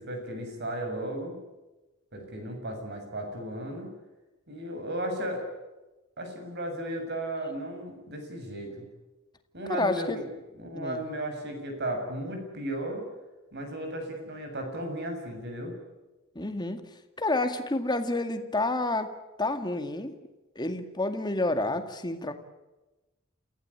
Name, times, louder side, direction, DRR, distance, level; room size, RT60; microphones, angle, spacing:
voice 1, 0.0-1.3 2.1-3.9 4.5-5.5 6.2-8.9 9.5-10.2 10.6-13.0 13.5-15.7, right 1 dB, 50° right, 5 dB, 7.1 m, -35 dB
voice 2, 9.7-10.2 10.7-11.0 16.4-16.9 17.2-19.1 19.4-20.2 20.6-22.3, left 2 dB, 20° left, 7 dB, 2.1 m, -29 dB
29.0 x 16.0 x 9.8 m, 1.1 s
head